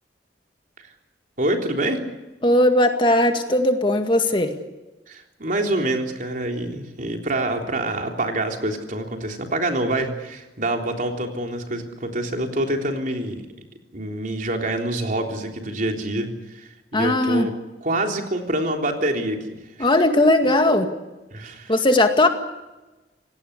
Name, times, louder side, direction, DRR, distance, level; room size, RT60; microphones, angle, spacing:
voice 1, 1.4-2.0 5.1-13.4 13.9-17.5 17.8-19.9 21.3-21.7, right 1 dB, 50° right, 3 dB, 3.6 m, -26 dB
voice 2, 2.4-4.5 16.9-17.5 19.8-20.9 21.7-22.3, left 1 dB, 30° left, 6 dB, 2.0 m, -18 dB
27.5 x 18.5 x 8.3 m, 1.1 s
head